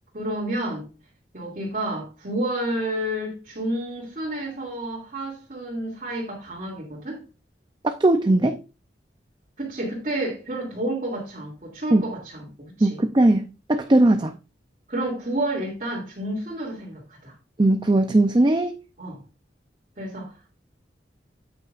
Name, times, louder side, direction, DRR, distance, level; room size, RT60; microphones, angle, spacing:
voice 1, 0.1-0.8 1.3-7.2 9.6-13.0 14.9-17.4 19.0-19.2 20.0-20.5, right 1 dB, 45° right, 2.5 m, -30 dB
voice 2, 7.8-8.6 11.9-12.0 12.8-14.3 17.6-18.8, right 2 dB, 25° right, 0.5 m, -19 dB
9.0 x 8.8 x 2.5 m
head